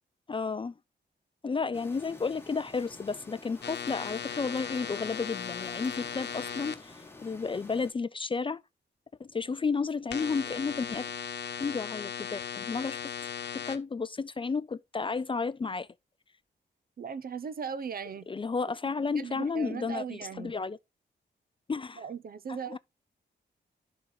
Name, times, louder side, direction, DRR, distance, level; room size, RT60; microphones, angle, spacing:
voice 1, 0.3-0.7 1.4-8.6 9.2-11.1 11.6-13.0 13.5-15.9 18.3-20.8 21.7-22.0 22.7-22.8, left 4 dB, 25° left, 0.4 m, -32 dB
sound 1, 1.7-7.9, left 2 dB, 10° left, 2.1 m, -50 dB
sound 2, 3.6-6.8 10.1-13.8, left 7 dB, 65° left, 1.0 m, -37 dB
voice 2, 17.0-18.3 19.1-20.6 22.0-22.8, right 6 dB, 50° right, 0.7 m, -38 dB
11.0 x 4.4 x 3.9 m
wide cardioid pair, 120°, 19 cm